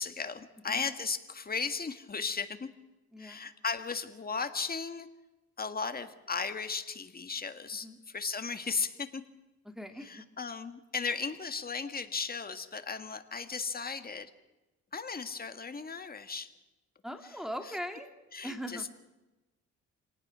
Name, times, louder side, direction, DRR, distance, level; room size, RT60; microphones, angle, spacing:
voice 1, 0.0-2.7 3.2-5.1 5.6-9.2 10.0-14.3 14.9-16.5 18.3-18.9, left 5 dB, 30° left, 8 dB, 1.8 m, -36 dB
voice 2, 3.1-3.5 7.8-8.0 9.6-10.3 17.0-18.1 18.4-18.9, equal, ahead, 5 dB, 2.8 m, -40 dB
27.5 x 19.0 x 6.3 m, 1.1 s
cardioid pair, 90°, 30 cm